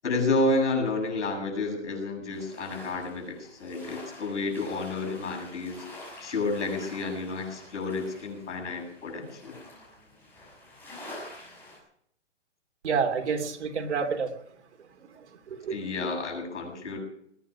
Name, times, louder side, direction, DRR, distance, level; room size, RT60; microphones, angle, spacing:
voice 1, 0.0-5.8 6.2-9.5 15.7-17.0, left 3 dB, 75° left, 3 dB, 7.9 m, -30 dB
sound 1, 2.3-11.8, left 1 dB, 5° left, 6.3 m, -47 dB
voice 2, 12.8-14.3 15.1-15.8, right 5 dB, 70° right, 6 dB, 3.0 m, -29 dB
20.5 x 10.0 x 6.2 m, 0.69 s
hypercardioid pair, 160°, 36 cm